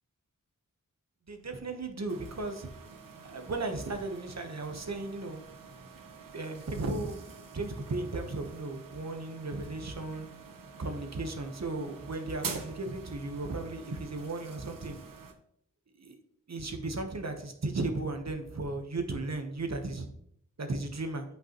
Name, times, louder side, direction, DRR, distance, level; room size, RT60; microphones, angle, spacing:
voice 1, 1.3-2.7 3.3-5.4 6.3-10.3 10.8-15.0 16.0-16.1 16.5-20.1 20.6-21.2, right 2 dB, 55° right, 6 dB, 1.0 m, -35 dB
sound 1, 2.1-15.3, right 5 dB, 75° right, 0.9 m, -47 dB
8.1 x 5.6 x 2.9 m, 0.70 s
wide cardioid pair, 70°, 33 cm